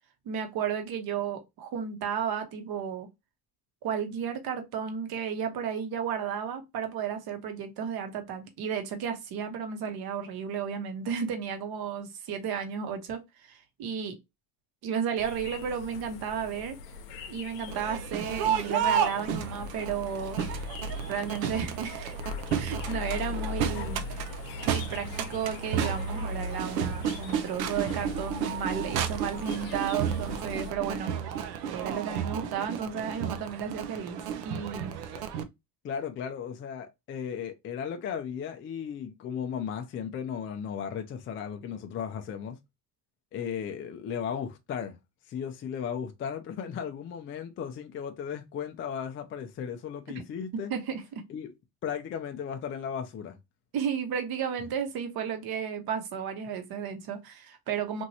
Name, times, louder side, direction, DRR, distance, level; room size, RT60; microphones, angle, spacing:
voice 1, 0.2-3.1 3.8-14.2 14.8-16.8 17.3-20.4 21.1-22.1 22.6-24.0 24.6-31.1 31.7-34.2 34.4-35.0 50.7-51.0 53.7-58.0, right 7 dB, 50° right, 1.0 m, -33 dB
sound 1, 15.2-30.7, left 3 dB, 85° left, 0.8 m, -39 dB
Crowd, 17.7-35.4, right 8 dB, 85° right, 0.6 m, -32 dB
voice 2, 35.8-42.6 43.3-45.0 45.3-50.7 51.3-51.5 51.8-53.4, left 7 dB, 25° left, 0.4 m, -35 dB
3.0 x 2.6 x 2.6 m
supercardioid pair, 90°, 48 cm